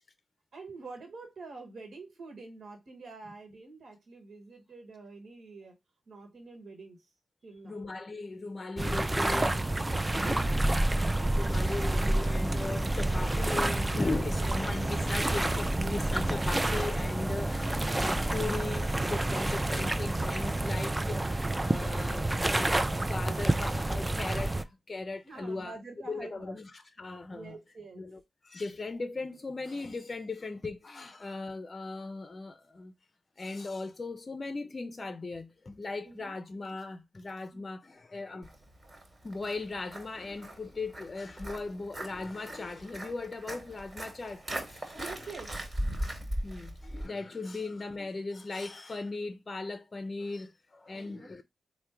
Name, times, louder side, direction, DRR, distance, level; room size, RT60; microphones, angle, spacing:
voice 1, 0.5-5.7 6.1-7.1 7.4-7.8 10.1-10.6 25.2-26.6 27.3-28.0 36.0-36.3 37.5-37.7 45.0-45.5 47.5-47.6 50.9-51.3, right 3 dB, 75° right, 1.1 m, -47 dB
voice 2, 7.6-10.7 11.4-25.7 26.1-27.5 28.0-32.9 33.4-38.5 39.2-45.0 46.4-51.4, left 3 dB, 45° left, 0.4 m, -38 dB
sound 1, 8.8-24.6, right 1 dB, 25° right, 0.4 m, -29 dB
Human voice / Acoustic guitar, 12.6-20.6, left 1 dB, 15° left, 0.8 m, -50 dB
Walk footsteps, 38.4-47.1, right 1 dB, 45° right, 1.4 m, -39 dB
3.4 x 2.1 x 4.3 m
supercardioid pair, 40°, 0 cm